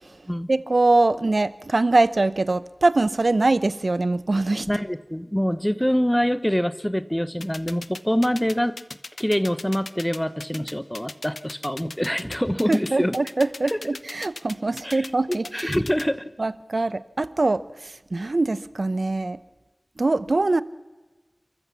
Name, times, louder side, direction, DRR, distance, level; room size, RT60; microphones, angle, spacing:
voice 1, 0.5-4.7 12.7-15.7 16.4-19.4 20.0-20.6, right 2 dB, 65° right, 16 dB, 0.8 m, -23 dB
voice 2, 4.7-8.8 9.2-13.2 13.7-13.8 14.8-16.2, equal, 10° left, 14 dB, 0.9 m, -25 dB
sound 1, 7.4-16.0, left 3 dB, 85° left, 0.8 m, -37 dB
29.0 x 14.5 x 7.2 m, 1.1 s
wide cardioid pair, 60°, 0 cm